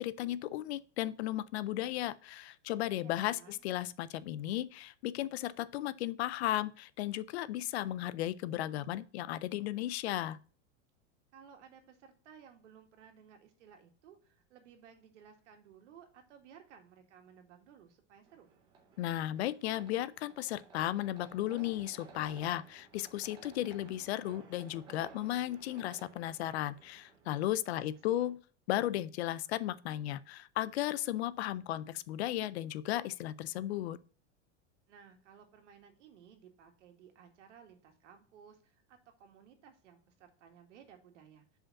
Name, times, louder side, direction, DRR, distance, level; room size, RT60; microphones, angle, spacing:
voice 1, 0.0-10.4 19.0-28.4 28.7-34.0, left 13 dB, 65° left, 0.5 m, -35 dB
voice 2, 3.0-3.6 11.3-18.5 28.1-28.3 34.9-41.6, right 7 dB, 75° right, 1.8 m, -58 dB
sound 1, 18.2-28.3, right 5 dB, 15° right, 0.6 m, -57 dB
5.1 x 5.0 x 5.7 m
supercardioid pair, 180°, 36 cm